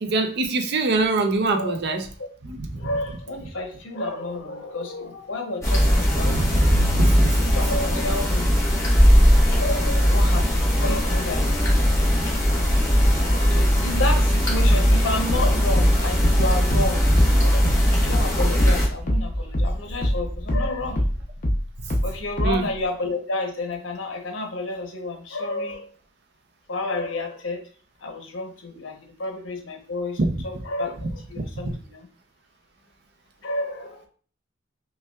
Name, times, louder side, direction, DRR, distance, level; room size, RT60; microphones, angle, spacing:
voice 1, 0.0-2.1 2.4-2.8 6.4-7.4 13.5-13.6 22.4-22.7 31.4-31.7, right 3 dB, 60° right, 5 dB, 0.5 m, -25 dB
voice 2, 1.5-2.0 2.8-6.6 7.4-8.5 9.6-11.7 13.2-17.1 17.4-21.1 22.0-25.9 26.7-27.6 28.0-32.1 33.4-34.1, left 2 dB, 85° left, 3 dB, 0.8 m, -31 dB
sound 1, 5.6-18.9, equal, 15° left, 1.0 m, -19 dB
Train, 10.0-21.2, equal, 35° right, 0.9 m, -36 dB
sound 2, 15.3-20.2 20.5-22.7, equal, 45° left, 0.7 m, -24 dB
5.4 x 2.3 x 2.3 m, 0.42 s
head